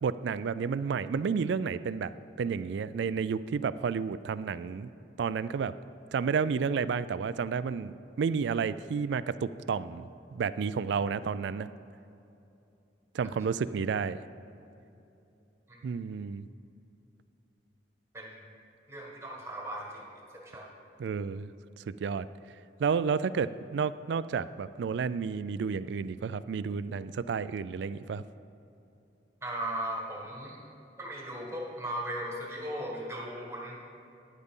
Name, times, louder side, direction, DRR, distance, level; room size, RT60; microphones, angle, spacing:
voice 1, 0.0-4.9 5.2-5.7 6.1-11.7 13.1-14.2 15.8-16.5 21.0-21.5 21.8-22.3 22.8-28.2, right 6 dB, 75° right, 15 dB, 0.3 m, -31 dB
voice 2, 18.1-18.5 18.9-20.1 20.3-20.7 29.4-30.6 31.0-33.8, right 1 dB, 15° right, -2 dB, 1.5 m, -37 dB
12.0 x 10.0 x 3.7 m, 2.8 s
head